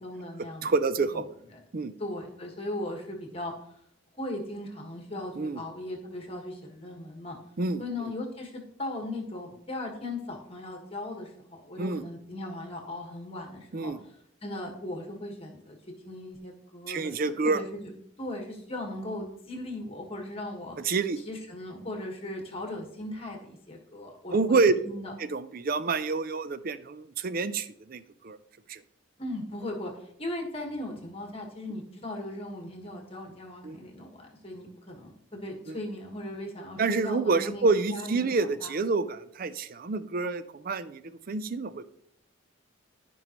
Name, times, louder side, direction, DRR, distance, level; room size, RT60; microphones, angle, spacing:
voice 1, 0.0-0.7 2.0-3.5 4.2-7.4 7.8-13.9 14.4-15.8 16.0-17.2 17.4-17.9 18.2-20.8 21.2-24.6 24.8-25.1 29.2-29.9 30.2-38.7, left 1 dB, 30° left, 2 dB, 1.5 m, -38 dB
voice 2, 0.6-1.3 1.7-1.9 5.4-5.6 7.6-8.1 11.8-12.0 13.7-14.0 16.9-17.6 20.8-21.2 24.3-24.7 25.2-28.4 28.7-28.8 33.6-33.8 35.7-35.8 36.8-41.8, right 4 dB, 45° right, 14 dB, 0.4 m, -28 dB
13.0 x 5.3 x 3.0 m, 0.71 s
head